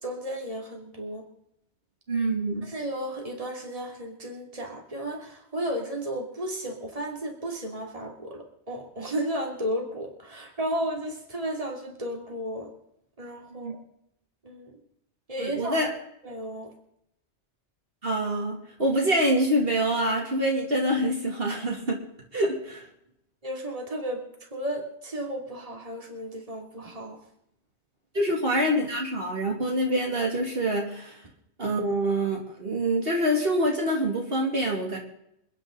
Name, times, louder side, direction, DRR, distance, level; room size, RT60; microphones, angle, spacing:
voice 1, 0.0-1.3 2.6-12.7 13.2-13.8 14.4-14.8 15.3-15.8 16.2-16.7 23.4-24.2 24.5-27.2, right 1 dB, 30° right, 1 dB, 2.8 m, -33 dB
voice 2, 2.1-2.6 13.5-13.7 15.4-15.9 18.0-22.0 22.3-22.9 28.1-31.2 31.6-35.0, right 1 dB, 55° right, -1 dB, 3.0 m, -26 dB
28.0 x 9.8 x 3.9 m, 0.78 s
omnidirectional pair, 1.2 m